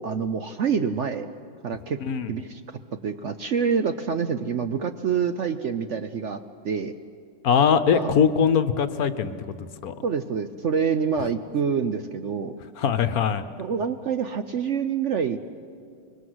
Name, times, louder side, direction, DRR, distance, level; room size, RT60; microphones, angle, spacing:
voice 1, 0.0-1.3 1.6-2.0 2.3-2.6 3.0-6.9 7.9-8.1 10.0-12.6 13.6-15.4, right 6 dB, 55° right, 9 dB, 0.8 m, -26 dB
voice 2, 7.4-9.9 12.8-13.4, left 7 dB, 60° left, 11 dB, 1.3 m, -22 dB
25.0 x 22.0 x 7.9 m, 2.2 s
omnidirectional pair, 1.8 m